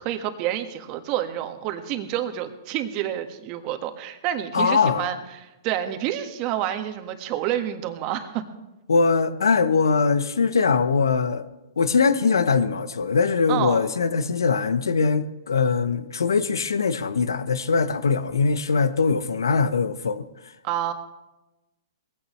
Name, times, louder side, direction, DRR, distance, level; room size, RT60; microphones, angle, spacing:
voice 1, 0.0-8.4 13.5-13.8 20.6-20.9, right 11 dB, 40° right, 1.5 m, -28 dB
voice 2, 4.5-5.1 8.9-11.4 11.8-20.3, left 5 dB, 85° left, 0.9 m, -22 dB
20.0 x 15.5 x 3.2 m
hypercardioid pair, 125°, 2 cm